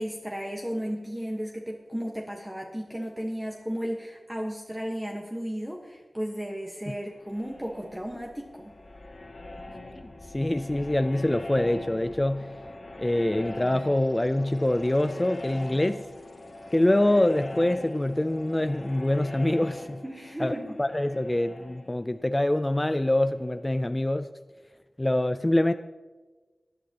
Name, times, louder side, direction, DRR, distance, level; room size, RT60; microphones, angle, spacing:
voice 1, 0.0-8.7 20.0-20.7, equal, 15° right, 0 dB, 1.2 m, -34 dB
sound 1, 6.9-23.5, left 2 dB, 50° left, 1.7 m, -43 dB
voice 2, 10.0-12.5 13.0-16.0 16.7-20.0 20.4-24.3 25.0-25.7, left 1 dB, 20° left, 9 dB, 0.4 m, -25 dB
19.0 x 11.0 x 2.9 m, 1.3 s
wide cardioid pair, 90°, 0 cm